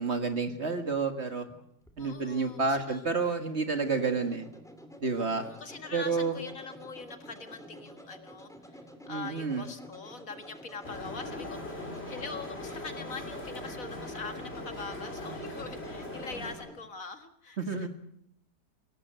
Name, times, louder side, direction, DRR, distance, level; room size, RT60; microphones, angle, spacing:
voice 1, 0.0-1.5 2.0-4.5 5.0-5.4 5.9-6.3 9.1-9.6 17.6-17.9, right 4 dB, 40° right, 6 dB, 2.0 m, -30 dB
sound 1, 1.5-16.8, equal, ahead, 2.6 m, -50 dB
voice 2, 2.0-3.0 5.3-8.8 9.1-17.9, left 4 dB, 55° left, 7 dB, 2.1 m, -43 dB
sound 2, 10.8-16.5, left 1 dB, 35° left, 4.1 m, -40 dB
23.5 x 18.0 x 7.8 m, 0.73 s
omnidirectional pair, 1.8 m